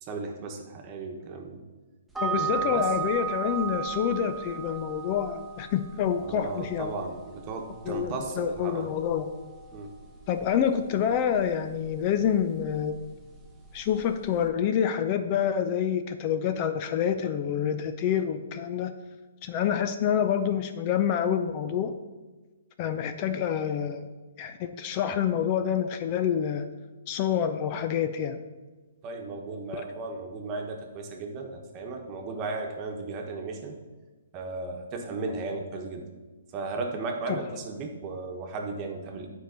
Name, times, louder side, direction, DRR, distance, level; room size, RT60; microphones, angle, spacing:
voice 1, 0.0-1.6 2.5-2.9 6.2-9.1 9.7-9.9 29.0-33.8 34.3-36.0 36.5-39.3, right 3 dB, 30° right, 3 dB, 1.2 m, -35 dB
sound 1, 2.1-14.5, right 8 dB, 5° right, 1.1 m, -38 dB
voice 2, 2.2-6.9 7.9-9.3 10.3-13.0 13.7-18.9 19.4-21.9 22.8-24.1 24.4-26.7 27.1-28.4 37.3-37.4, left 8 dB, 35° left, 9 dB, 0.5 m, -27 dB
9.3 x 4.6 x 5.2 m, 1.2 s
hypercardioid pair, 145°, 0 cm